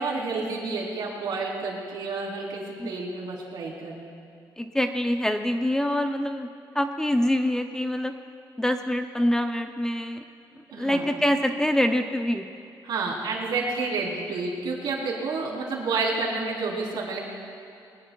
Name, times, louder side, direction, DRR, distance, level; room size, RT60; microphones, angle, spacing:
voice 1, 0.0-4.2 10.7-11.0 12.8-17.2, right 3 dB, 65° right, -3 dB, 3.8 m, -30 dB
voice 2, 4.6-6.5 6.7-8.1 8.6-10.2 10.6-12.5, left 1 dB, 5° left, 6 dB, 0.5 m, -25 dB
23.0 x 19.5 x 2.3 m, 2.6 s
cardioid pair, 150°, 8 cm